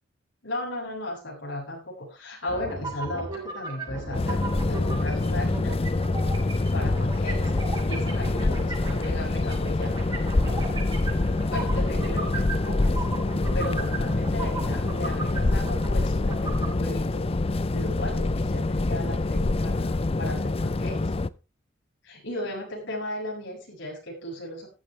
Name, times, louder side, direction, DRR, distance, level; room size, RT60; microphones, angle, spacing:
voice 1, 0.4-5.7 6.7-9.9 11.5-13.0 13.5-17.2 17.7-21.1 22.1-24.7, left 1 dB, 75° left, -2 dB, 7.6 m, -35 dB
sound 1, 2.5-16.7, right 3 dB, 25° right, 5.8 m, -37 dB
sound 2, 4.1-21.3, left 2 dB, 30° left, 0.5 m, -25 dB
14.5 x 14.5 x 3.3 m, 0.30 s
head